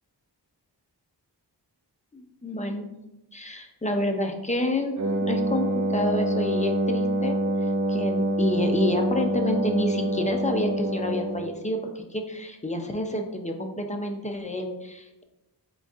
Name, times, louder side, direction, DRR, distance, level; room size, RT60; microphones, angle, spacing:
voice 1, 2.1-2.9 3.3-15.2, left 1 dB, 20° left, 4 dB, 0.4 m, -29 dB
Wind instrument woodwind instrument, 5.0-11.6, right 1 dB, 45° right, 0.4 m, -26 dB
3.8 x 3.6 x 2.4 m, 0.96 s
wide cardioid pair, 75°, 43 cm